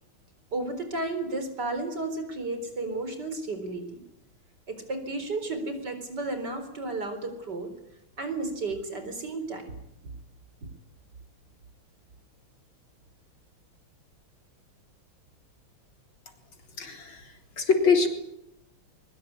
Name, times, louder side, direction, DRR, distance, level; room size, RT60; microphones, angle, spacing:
voice 1, 0.5-4.0 4.7-7.7 8.2-9.6, right 2 dB, 50° right, 8 dB, 4.8 m, -33 dB
voice 2, 16.8-18.1, left 5 dB, 70° left, 5 dB, 4.4 m, -24 dB
23.0 x 22.5 x 9.7 m, 0.80 s
omnidirectional pair, 2.3 m